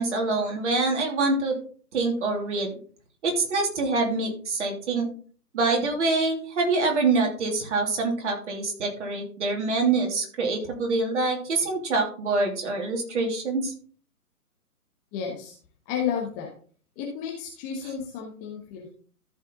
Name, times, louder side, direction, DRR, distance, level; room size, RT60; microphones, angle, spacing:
voice 1, 0.0-1.6 1.9-2.8 3.2-5.1 5.5-13.7, right 3 dB, 50° right, 2 dB, 3.1 m, -25 dB
voice 2, 15.1-15.5 15.9-16.5 17.0-18.9, left 7 dB, 15° left, -1 dB, 1.1 m, -32 dB
14.0 x 4.9 x 3.9 m, 0.44 s
figure-of-eight pair, 140°, 46 cm